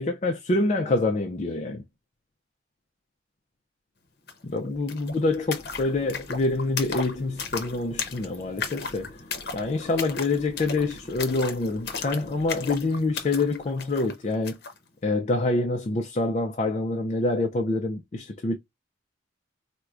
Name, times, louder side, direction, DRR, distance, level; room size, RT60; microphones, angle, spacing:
voice 1, 0.0-1.8 4.4-9.1 9.5-14.6 15.0-18.6, left 2 dB, 35° left, 0.4 m, -26 dB
sound 1, 4.3-4.4 4.6-14.8, left 5 dB, 55° left, 0.8 m, -36 dB
4.5 x 2.1 x 2.4 m
head